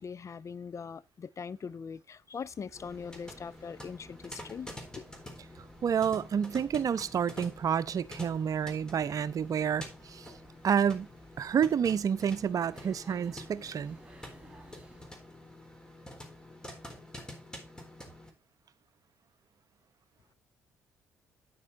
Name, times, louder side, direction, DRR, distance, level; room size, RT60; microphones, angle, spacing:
voice 1, 0.0-4.7 5.0-5.1, left 6 dB, 40° left, 0.7 m, -41 dB
sound 1, 2.3-15.3, right 2 dB, 15° right, 3.6 m, -58 dB
sound 2, 2.7-18.3, left 1 dB, 10° left, 3.9 m, -48 dB
voice 2, 5.8-10.3 10.6-11.1 11.4-14.0, right 7 dB, 50° right, 0.8 m, -29 dB
9.7 x 9.6 x 2.6 m
hypercardioid pair, 50°, 8 cm